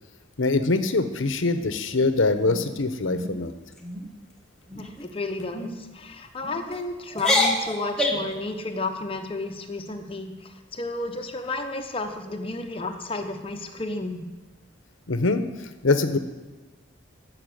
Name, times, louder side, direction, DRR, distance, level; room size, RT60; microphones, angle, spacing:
voice 1, 0.4-3.5 15.1-15.4 15.8-16.2, left 3 dB, 75° left, 10 dB, 1.0 m, -23 dB
sound 1, 1.4-2.0 2.4-2.7 3.1-3.3 3.7-4.1 4.7-5.0 5.5-5.7 6.4-6.8 7.1-8.4, left 1 dB, 5° left, 1.3 m, -27 dB
voice 2, 4.8-14.3, left 2 dB, 30° left, 5 dB, 0.9 m, -32 dB
14.0 x 5.8 x 9.3 m, 1.2 s
head